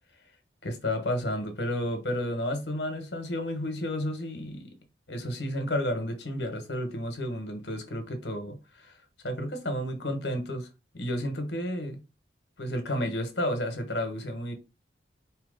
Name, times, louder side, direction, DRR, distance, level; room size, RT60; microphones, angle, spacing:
voice 1, 0.6-4.7 5.1-8.9 9.2-10.7 10.9-12.0 12.6-14.5, left 1 dB, 75° left, 1.3 m, -31 dB
4.5 x 2.9 x 3.9 m
head